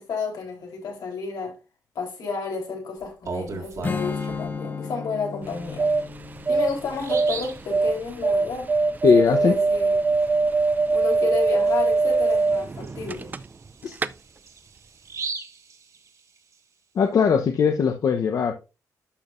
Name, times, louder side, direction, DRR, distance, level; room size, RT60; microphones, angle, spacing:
voice 1, 0.0-1.6 2.0-5.9 6.5-8.7 9.1-10.0 10.9-13.3, left 5 dB, 85° left, 3.8 m, -31 dB
Bird vocalization bird call bird song, 3.0-4.5 6.0-6.1 6.5-6.6 6.9-7.7 11.1-11.3 11.7-11.8 12.3-16.5, right 4 dB, 55° right, 1.8 m, -37 dB
Strum, 3.8-9.2, left 4 dB, 25° left, 0.7 m, -35 dB
sound 1, 5.4-13.7 13.9-14.1, right 3 dB, 25° right, 0.4 m, -22 dB
voice 2, 9.0-9.5 13.8-13.9 17.0-18.5, left 6 dB, 60° left, 0.8 m, -19 dB
11.5 x 6.2 x 2.5 m
wide cardioid pair, 150°, 7 cm